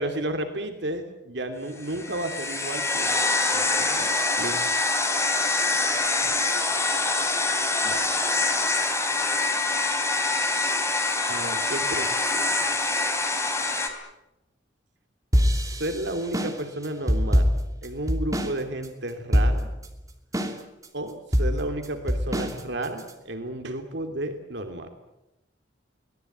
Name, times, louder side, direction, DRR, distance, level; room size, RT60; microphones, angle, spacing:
voice 1, 0.0-3.2 3.5-4.6 7.8-8.2 11.3-12.8 13.1-13.3 15.5-17.5 17.8-19.7 20.9-24.9, right 1 dB, 65° right, 6 dB, 2.7 m, -33 dB
sound 1, 1.8-13.9, left 3 dB, 15° left, 3.4 m, -25 dB
sound 2, 15.3-18.6 18.8-18.9 19.3-19.9 20.3-20.9 21.3-23.1, equal, 20° right, 2.9 m, -23 dB
24.5 x 19.0 x 9.3 m, 0.92 s
head